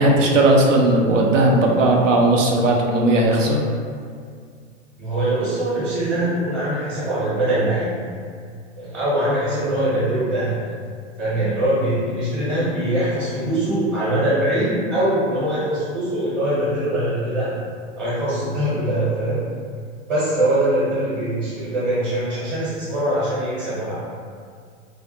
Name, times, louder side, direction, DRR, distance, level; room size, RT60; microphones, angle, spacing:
voice 1, 0.0-3.6, right 1 dB, 85° right, -1 dB, 0.6 m, -17 dB
voice 2, 5.0-8.0 8.8-10.6 11.2-17.5 18.0-19.4 20.1-23.9, right 1 dB, 20° right, -10 dB, 0.8 m, -22 dB
2.4 x 2.3 x 2.6 m, 2.1 s
hypercardioid pair, 125°, 37 cm